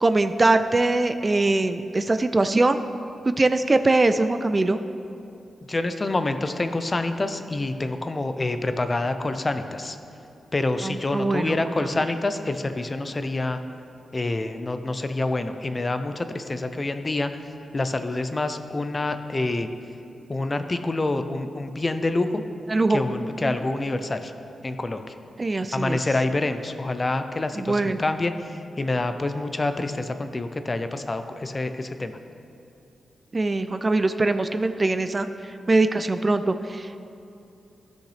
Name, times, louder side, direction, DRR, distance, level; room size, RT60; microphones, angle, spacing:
voice 1, 0.0-2.8 3.3-4.8 10.8-11.6 22.7-23.0 23.4-23.6 25.4-26.0 27.6-28.0 33.3-35.3 35.7-37.0, right 2 dB, 30° right, 10 dB, 0.3 m, -22 dB
voice 2, 5.7-10.0 10.5-13.6 14.1-17.4 17.7-19.7 20.3-22.4 22.9-24.3 24.6-25.2 25.7-32.1, left 2 dB, 30° left, 9 dB, 0.5 m, -27 dB
13.0 x 6.4 x 3.3 m, 2.7 s
cardioid pair, 85°, 0 cm